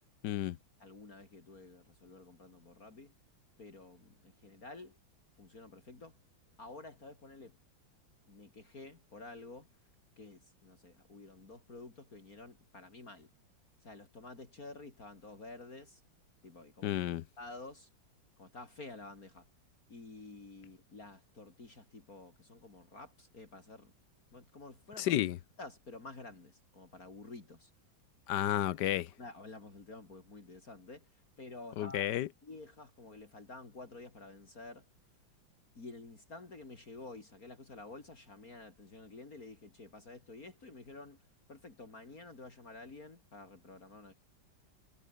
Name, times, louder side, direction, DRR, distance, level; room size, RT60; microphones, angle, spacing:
voice 1, 0.2-0.6 16.8-17.2 25.0-25.4 28.3-29.1 31.8-32.3, left 13 dB, 70° left, 1.2 m, -31 dB
voice 2, 0.8-3.1 3.6-5.0 5.4-6.2 6.6-7.6 8.3-9.7 10.2-13.3 13.8-16.0 16.4-17.0 17.4-17.9 18.4-19.5 19.9-23.9 24.3-25.2 25.6-27.7 29.2-32.1 32.4-34.9 35.8-41.2 41.5-44.1, left 3 dB, 45° left, 3.9 m, -50 dB
omnidirectional pair, 2.1 m